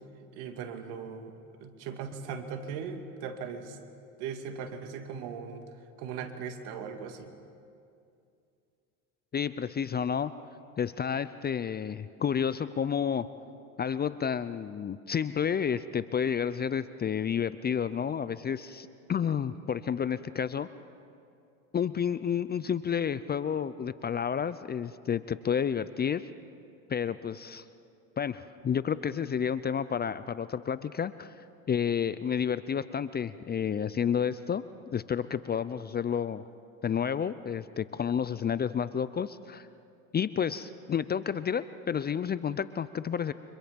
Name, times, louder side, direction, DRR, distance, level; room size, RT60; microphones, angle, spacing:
voice 1, 0.3-1.4 1.6-3.8 4.2-5.6 6.0-7.2, right 6 dB, 65° right, 6 dB, 2.5 m, -38 dB
voice 2, 9.3-10.3 10.8-13.3 13.8-20.7 21.7-26.3 26.9-27.6 28.2-31.3 31.7-34.6 34.9-36.4 36.8-39.7 40.1-43.3, left 7 dB, 25° left, 15 dB, 0.6 m, -30 dB
30.0 x 25.5 x 5.3 m, 2.5 s
hypercardioid pair, 85°, 43 cm